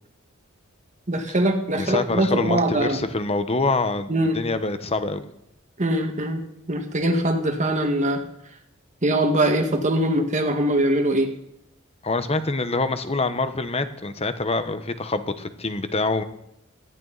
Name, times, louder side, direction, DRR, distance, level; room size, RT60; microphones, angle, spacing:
voice 1, 1.1-3.0 4.1-4.4 5.8-6.4 6.7-8.2 9.0-11.3, right 1 dB, 35° right, 5 dB, 1.8 m, -22 dB
voice 2, 1.8-5.3 12.0-16.2, left 3 dB, 30° left, 10 dB, 1.2 m, -25 dB
18.5 x 14.0 x 4.2 m, 0.76 s
head